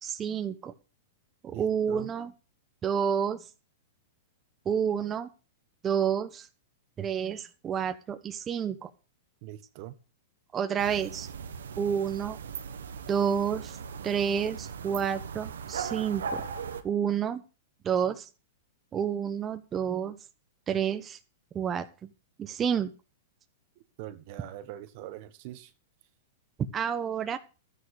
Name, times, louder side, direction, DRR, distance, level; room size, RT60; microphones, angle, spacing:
voice 1, 0.0-0.7 1.4-2.3 2.8-3.4 4.6-5.3 5.8-6.5 7.0-8.9 10.5-11.3 11.8-12.4 13.1-13.8 14.0-16.4 16.8-17.4 17.8-18.3 18.9-20.1 20.7-21.2 21.5-21.9 22.4-22.9 26.7-27.4, right 8 dB, 25° right, 1.2 m, -29 dB
voice 2, 1.5-2.1 9.4-9.9 24.0-25.7, right 14 dB, 50° right, 1.5 m, -42 dB
sound 1, 10.8-16.8, right 6 dB, 85° right, 1.5 m, -38 dB
12.5 x 10.0 x 4.9 m
hypercardioid pair, 120°, 0 cm